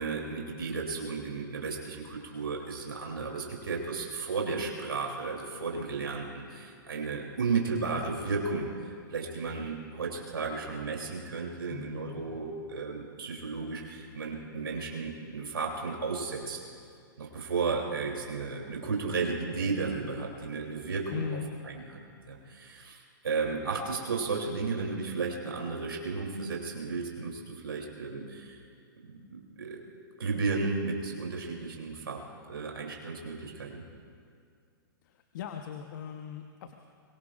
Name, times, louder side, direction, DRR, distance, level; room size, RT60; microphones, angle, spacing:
voice 1, 0.0-8.7 9.1-16.6 17.2-21.2 21.6-22.0 22.3-28.6 29.0-29.8 30.2-32.2 32.5-33.8, right 4 dB, 80° right, -1 dB, 3.2 m, -34 dB
voice 2, 11.7-12.4 21.1-21.5 35.0-36.7, left 8 dB, 55° left, 5 dB, 1.1 m, -39 dB
23.5 x 23.0 x 2.5 m, 2.2 s
hypercardioid pair, 115°, 12 cm